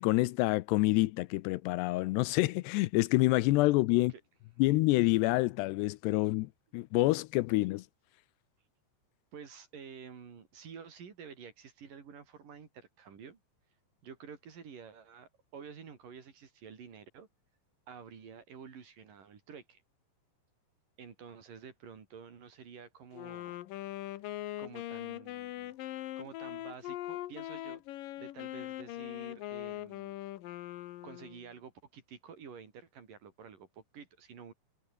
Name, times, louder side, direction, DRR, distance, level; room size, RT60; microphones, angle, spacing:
voice 1, 0.0-4.1 4.6-7.8, left 20 dB, 85° left, 2.7 m, -27 dB
voice 2, 9.3-13.4 14.0-17.3 17.9-19.8 21.0-23.6 24.6-25.7 26.2-27.8 28.2-30.1 31.0-34.5, right 6 dB, 55° right, 4.6 m, -50 dB
Wind instrument woodwind instrument, 23.1-31.5, left 14 dB, 70° left, 2.3 m, -41 dB
omnidirectional pair, 4.9 m